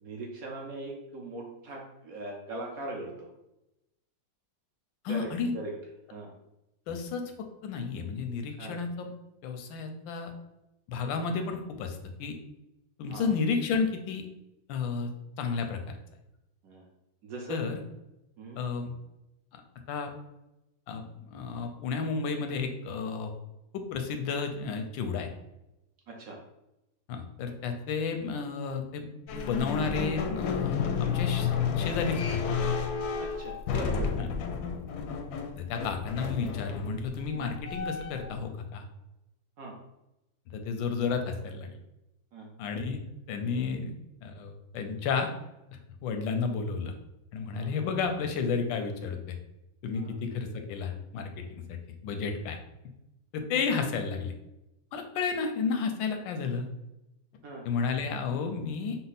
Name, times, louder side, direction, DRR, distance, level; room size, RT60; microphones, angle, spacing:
voice 1, 0.0-3.3 5.1-5.7 6.1-6.3 8.6-8.8 13.1-13.3 16.6-16.9 17.2-17.6 18.4-18.6 26.1-26.4 33.2-34.2 37.3-37.5 39.6-39.8 42.3-42.5 47.5-47.7 49.9-50.2 57.4-57.7, right 2 dB, 65° right, 0 dB, 0.9 m, -40 dB
voice 2, 5.0-5.5 6.9-7.2 7.6-9.1 9.4-10.3 10.9-12.3 13.0-14.2 14.7-15.1 15.4-16.0 17.5-17.8 18.6-18.9 19.5-19.6 19.9-20.1 20.9-23.3 23.7-25.3 27.1-31.5 31.8-32.4 34.2-34.3 35.6-38.8 40.5-41.7 42.6-43.0 43.3-43.9 44.2-45.3 46.0-46.9 47.3-49.2 49.8-51.3 52.0-52.6 53.3-54.3 54.9-56.7 57.6-59.0, left 5 dB, 85° left, 5 dB, 1.4 m, -32 dB
sound 1, 29.3-38.4, left 6 dB, 70° left, 0.9 m, -31 dB
5.3 x 2.0 x 4.0 m, 0.90 s
omnidirectional pair, 2.0 m